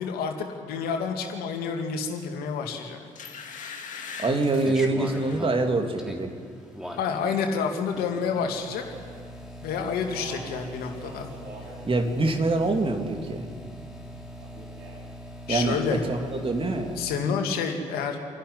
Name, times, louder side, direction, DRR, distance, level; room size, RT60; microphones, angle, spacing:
voice 1, 0.0-3.0 7.0-8.8 9.6-11.3 15.5-16.0 17.0-18.3, left 6 dB, 65° left, 4 dB, 2.5 m, -29 dB
sound 1, 2.5-2.6 3.2-5.5 5.9-6.2 6.5-7.2 7.5-7.6, left 5 dB, 50° left, 2.5 m, -41 dB
voice 2, 4.2-6.3 11.8-13.5 15.5-17.0, right 2 dB, 30° right, 5 dB, 2.7 m, -25 dB
sound 2, 4.4-17.2, equal, 5° right, 3.1 m, -41 dB
Speech, 9.9-11.8 12.1-13.0 14.4-15.1, right 2 dB, 60° right, 5.5 m, -45 dB
27.0 x 11.5 x 9.9 m, 2.1 s
figure-of-eight pair, 45°, 17 cm